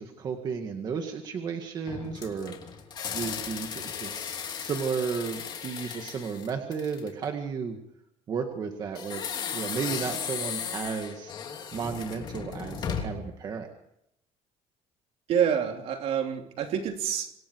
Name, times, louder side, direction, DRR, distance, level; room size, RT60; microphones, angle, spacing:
voice 1, 0.0-2.6 3.1-7.8 8.3-11.3 11.7-13.7, right 6 dB, 30° right, 2.0 m, -33 dB
sound 1, 1.9-7.2 8.9-13.3, left 7 dB, 35° left, 3.1 m, -36 dB
voice 2, 15.3-17.3, right 8 dB, 50° right, 3.3 m, -27 dB
27.5 x 26.0 x 4.7 m
cardioid pair, 180°, 13 cm